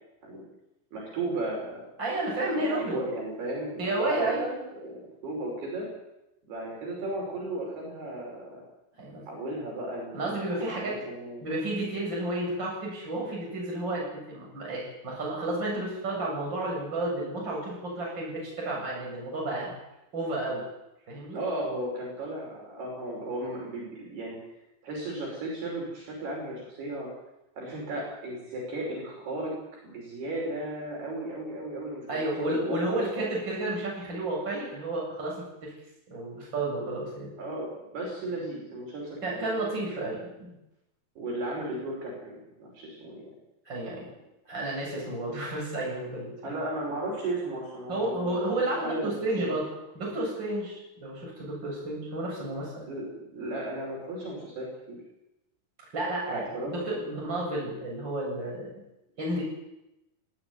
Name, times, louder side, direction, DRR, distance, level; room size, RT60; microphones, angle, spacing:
voice 1, 0.9-1.9 2.4-4.4 4.7-5.9 6.5-8.6 9.3-11.5 21.3-24.4 24.8-27.1 27.6-29.5 29.8-33.0 36.8-36.9 37.4-39.8 41.2-43.3 46.4-48.4 48.8-49.6 52.6-55.0 56.3-57.1, right 1 dB, 55° right, -2 dB, 7.5 m, -35 dB
voice 2, 2.0-3.0 3.8-4.7 9.0-9.2 10.1-11.0 11.4-19.8 20.1-20.6 21.1-21.4 32.1-35.3 35.6-35.7 36.1-37.3 39.2-40.5 43.7-44.1 44.4-46.3 47.9-49.6 50.0-52.8 55.9-58.7 59.2-59.4, right 1 dB, 20° right, -3 dB, 8.1 m, -31 dB
19.5 x 16.0 x 9.4 m, 0.92 s
omnidirectional pair, 5.6 m